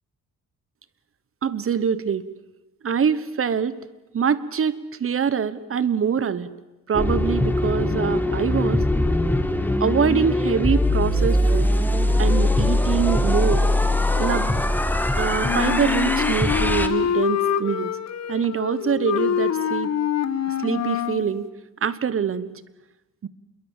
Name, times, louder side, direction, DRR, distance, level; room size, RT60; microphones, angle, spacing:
voice 1, 1.4-2.2 2.8-3.8 4.1-6.5 6.9-8.8 9.8-11.7 12.2-13.7 14.1-14.5 15.2-17.9 18.3-19.9 20.5-21.5 21.8-22.5 23.2-23.3, right 7 dB, 40° right, 16 dB, 1.3 m, -24 dB
sound 1, 6.9-16.9, left 1 dB, 5° left, 1.6 m, -21 dB
Wind instrument woodwind instrument, 15.4-21.3, left 9 dB, 50° left, 1.3 m, -25 dB
27.5 x 22.0 x 7.4 m, 1.0 s
cardioid pair, 130°, 34 cm